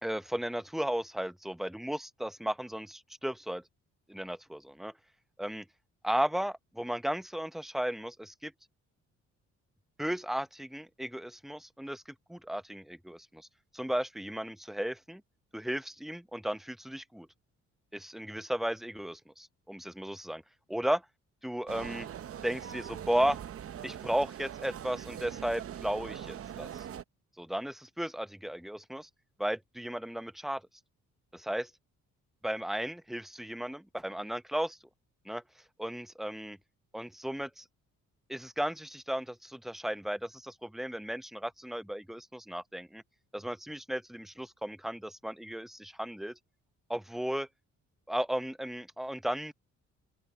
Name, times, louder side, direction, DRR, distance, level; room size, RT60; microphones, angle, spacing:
voice 1, 0.0-3.6 4.1-4.9 5.4-5.7 6.0-8.5 10.0-13.5 13.7-15.2 15.5-17.3 17.9-20.4 20.7-21.0 21.4-22.1 22.4-23.4 23.8-26.8 27.4-29.1 29.4-30.6 31.3-31.7 32.4-34.8 35.2-35.4 35.8-36.6 36.9-37.6 38.3-43.0 43.3-46.4 46.9-47.5 48.1-49.5, equal, ahead, 0.7 m, -35 dB
sound 1, 21.7-27.0, right 9 dB, 50° right, 0.8 m, -42 dB
open air
cardioid pair, 90°, 30 cm